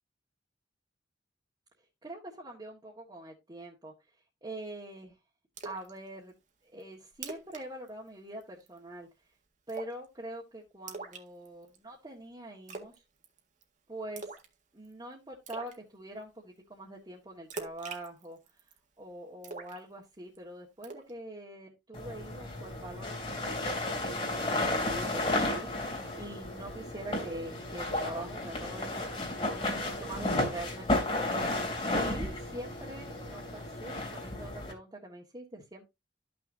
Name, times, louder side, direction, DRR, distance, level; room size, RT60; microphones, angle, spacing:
voice 1, 2.0-3.9 4.4-5.1 5.6-6.3 6.7-9.1 9.7-13.0 13.9-14.4 14.7-18.4 19.0-35.9, right 1 dB, 25° right, -3 dB, 1.7 m, -44 dB
Splash splatter, 5.6-5.9 6.3-6.4 6.8-6.9 7.1-7.6 7.9-8.1 8.4-8.8 9.7-10.1 10.9-11.8 12.7-13.0 13.2-13.6 14.2-14.5 14.8-14.9 15.5-15.8 17.5-18.8 19.4-20.4 20.8-21.1, right 4 dB, 45° right, 1.7 m, -42 dB
sound 1, 21.9-34.7, left 2 dB, 30° left, 3.0 m, -33 dB
13.0 x 6.2 x 2.7 m, 0.22 s
head